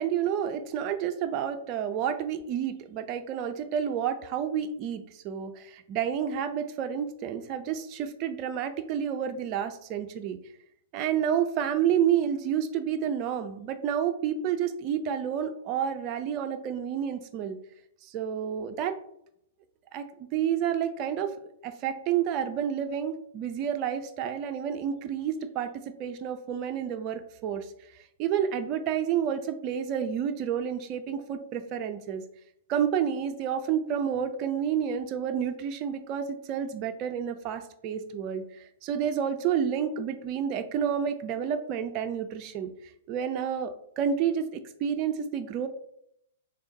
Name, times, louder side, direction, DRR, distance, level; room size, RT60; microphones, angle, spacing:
voice 1, 0.0-10.4 10.9-17.6 18.0-19.0 19.9-20.1 20.3-21.3 21.6-27.7 28.2-32.2 32.7-42.7 43.1-45.7, right 8 dB, 40° right, 7 dB, 0.3 m, -30 dB
3.5 x 3.4 x 2.7 m, 0.74 s
figure-of-eight pair, 110°, 0 cm